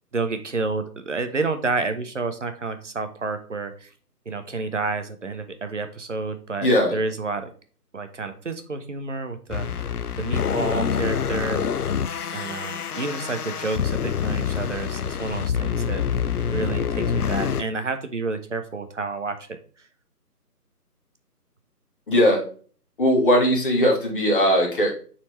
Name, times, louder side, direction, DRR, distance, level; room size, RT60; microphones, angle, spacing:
voice 1, 0.1-3.9 4.3-7.5 7.9-9.7 10.2-11.8 12.3-16.0 16.5-19.6, right 3 dB, 50° right, 8 dB, 0.8 m, -29 dB
voice 2, 6.6-7.0 22.1-22.4 23.0-24.9, equal, 30° left, -1 dB, 1.7 m, -19 dB
sound 1, 9.5-17.6, left 7 dB, 65° left, 0.6 m, -26 dB
7.6 x 4.3 x 3.1 m, 0.42 s
figure-of-eight pair, 155°, 48 cm